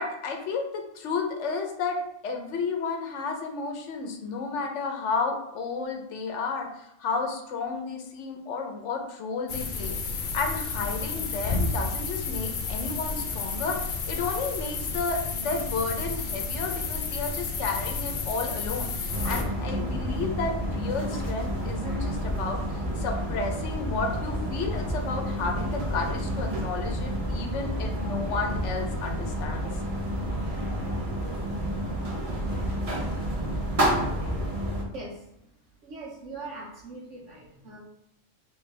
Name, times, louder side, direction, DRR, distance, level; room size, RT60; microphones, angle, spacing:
voice 1, 0.0-29.7, left 4 dB, 75° left, 3 dB, 1.0 m, -32 dB
sound 1, 9.5-19.4, left 4 dB, 60° left, 0.5 m, -31 dB
sound 2, 19.1-34.8, equal, 35° right, 0.7 m, -30 dB
voice 2, 35.8-37.8, right 2 dB, 80° right, -5 dB, 1.1 m, -41 dB
3.3 x 2.9 x 3.3 m, 0.80 s
omnidirectional pair, 1.2 m